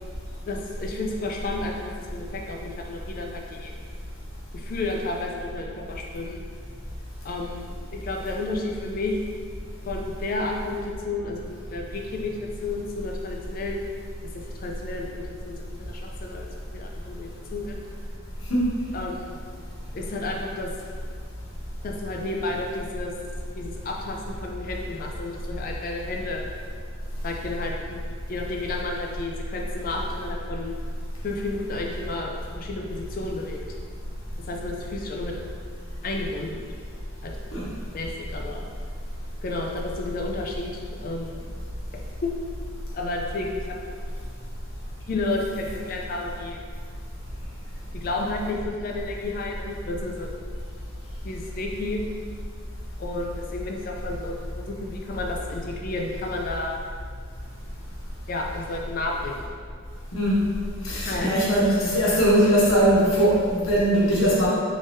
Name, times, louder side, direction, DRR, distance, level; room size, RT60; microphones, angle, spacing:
voice 1, 0.5-3.7 4.5-6.4 7.2-9.2 9.9-13.9 14.6-15.5 15.9-16.5 16.7-17.8 18.9-19.4 19.9-20.7 21.8-23.1 23.6-26.4 27.2-28.0 28.3-30.8 31.2-33.6 34.5-35.4 36.0-36.6 37.2-37.5 37.9-38.6 39.4-41.4 42.2-42.3 42.9-43.8 45.1-46.6 47.9-50.3 51.2-52.0 53.0-56.7 58.3-59.4 61.1-61.3, left 2 dB, 40° left, 0 dB, 0.3 m, -31 dB
voice 2, 60.8-64.5, equal, 85° left, -7 dB, 1.1 m, -20 dB
3.6 x 2.6 x 3.4 m, 2.1 s
head